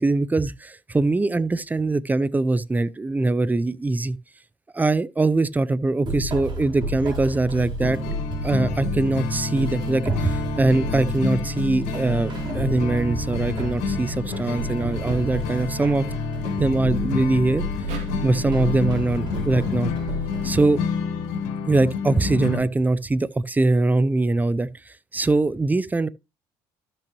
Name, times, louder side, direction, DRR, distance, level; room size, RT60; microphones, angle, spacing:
voice 1, 0.0-4.2 4.7-8.0 8.4-16.1 16.6-17.6 18.2-19.9 20.4-20.8 21.7-26.1, right 2 dB, 15° right, 0.6 m, -22 dB
sound 1, 6.1-20.6, equal, 40° right, 3.9 m, -31 dB
sound 2, 7.8-22.6, left 4 dB, 80° left, 1.6 m, -29 dB
sound 3, 17.9-21.1, right 5 dB, 70° right, 2.7 m, -43 dB
13.0 x 6.0 x 3.0 m
supercardioid pair, 75°, 11 cm